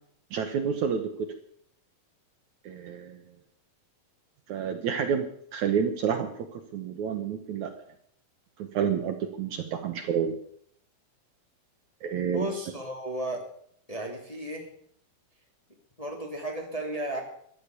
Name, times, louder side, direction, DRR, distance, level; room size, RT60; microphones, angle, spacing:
voice 1, 0.3-1.1 2.7-3.2 4.5-7.7 8.7-10.4 12.0-12.5, right 7 dB, 65° right, 6 dB, 2.3 m, -29 dB
voice 2, 12.3-13.4 13.9-14.7 16.0-17.2, right 1 dB, 10° left, 0 dB, 2.5 m, -34 dB
14.0 x 12.0 x 6.9 m, 0.65 s
omnidirectional pair, 4.1 m